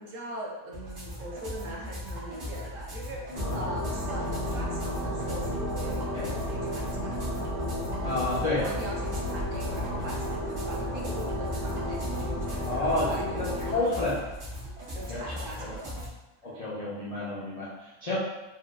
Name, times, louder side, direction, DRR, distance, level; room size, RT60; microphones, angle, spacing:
voice 1, 0.0-7.2 8.5-14.1 14.9-16.0 16.4-16.6, right 1 dB, 65° right, -3 dB, 1.0 m, -41 dB
sound 1, 0.7-16.1, equal, 85° right, 1.6 m, -39 dB
sound 2, 3.4-13.7, equal, 35° right, 0.6 m, -32 dB
voice 2, 8.0-8.7 12.7-13.1 13.3-13.4 13.7-14.2 15.1-15.7 16.4-18.2, left 2 dB, 70° left, -8 dB, 0.3 m, -30 dB
4.6 x 2.0 x 2.3 m, 1.1 s
omnidirectional pair, 1.5 m